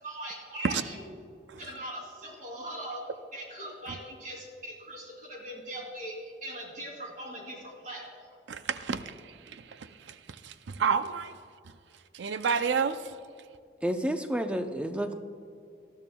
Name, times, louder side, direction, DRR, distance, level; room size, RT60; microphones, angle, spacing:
voice 1, 0.0-1.0 1.6-3.0 3.3-8.3, right 1 dB, 45° right, 2.9 m, -40 dB
voice 2, 8.5-10.2 10.4-11.4 12.1-13.1, right 6 dB, 75° right, 0.5 m, -30 dB
voice 3, 13.8-15.1, equal, 5° right, 0.5 m, -30 dB
19.5 x 12.5 x 2.3 m
head